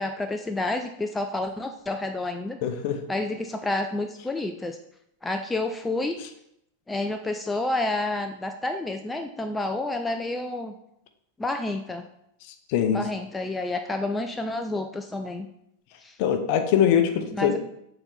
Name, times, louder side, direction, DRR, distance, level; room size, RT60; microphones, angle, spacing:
voice 1, 0.0-2.6 3.1-4.8 5.2-6.2 6.9-10.7 11.4-12.0 12.9-15.5 16.0-16.2 17.3-17.6, left 2 dB, 10° left, 6 dB, 0.4 m, -29 dB
voice 2, 2.6-3.0 12.7-13.0 16.2-17.6, left 9 dB, 45° left, 8 dB, 0.7 m, -22 dB
7.0 x 3.9 x 3.4 m, 0.77 s
figure-of-eight pair, 90°, 0 cm